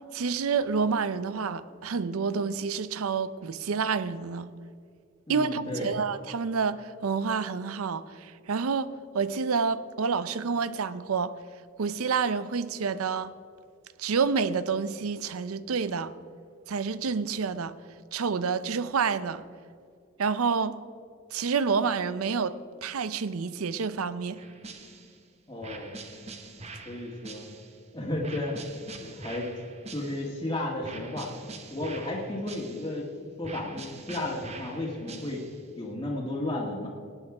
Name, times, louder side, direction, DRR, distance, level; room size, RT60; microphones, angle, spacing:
voice 1, 0.1-4.5 5.3-11.3 11.8-13.3 14.0-16.1 16.7-17.7 18.1-19.4 20.2-20.8 21.3-24.5, right 5 dB, 85° right, 0.6 m, -28 dB
voice 2, 5.3-6.0 25.5-26.0 26.8-27.5 27.9-28.6 29.0-29.5 29.9-31.3 31.7-35.5 35.8-36.9, left 1 dB, 20° left, 1.5 m, -33 dB
sound 1, 24.4-25.2 25.6-27.8 28.2-30.4 30.8-33.1 33.4-35.7, right 3 dB, 30° right, 0.9 m, -44 dB
18.0 x 8.9 x 4.8 m
head